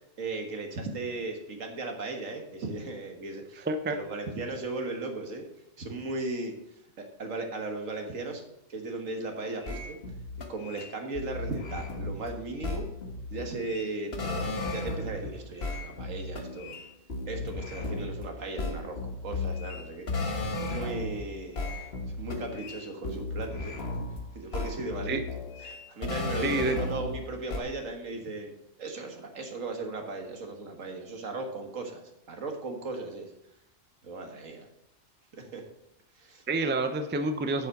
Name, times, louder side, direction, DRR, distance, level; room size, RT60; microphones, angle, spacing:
voice 1, 0.2-5.5 5.8-6.5 7.0-8.4 8.7-10.0 10.5-12.9 13.3-16.8 17.3-21.9 22.2-23.8 24.3-25.2 25.6-28.5 28.8-32.0 32.3-33.3 34.0-34.7 35.4-35.6 36.2-36.4, right 3 dB, 70° right, 3 dB, 1.9 m, -37 dB
voice 2, 3.7-4.0 25.1-25.2 26.4-26.8 36.5-37.7, right 2 dB, 10° right, 7 dB, 0.5 m, -28 dB
sound 1, 9.6-15.3 15.6-21.3 21.5-24.2 24.5-27.2 27.5-27.6, left 2 dB, 50° left, 1.5 m, -35 dB
8.1 x 7.3 x 6.5 m, 0.83 s
omnidirectional pair, 1.4 m